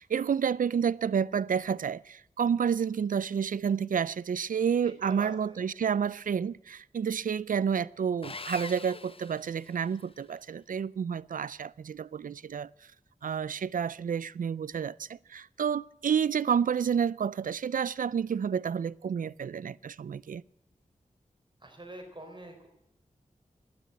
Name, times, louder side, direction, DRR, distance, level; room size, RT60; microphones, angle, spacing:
voice 1, 0.0-12.7 13.2-20.4, right 7 dB, 80° right, 0.4 m, -30 dB
voice 2, 4.5-5.6 21.6-22.7, right 1 dB, 35° right, 3.9 m, -45 dB
Sawing, 8.2-10.1, left 3 dB, 40° left, 0.8 m, -43 dB
12.5 x 10.5 x 8.9 m
wide cardioid pair, 60°, 14 cm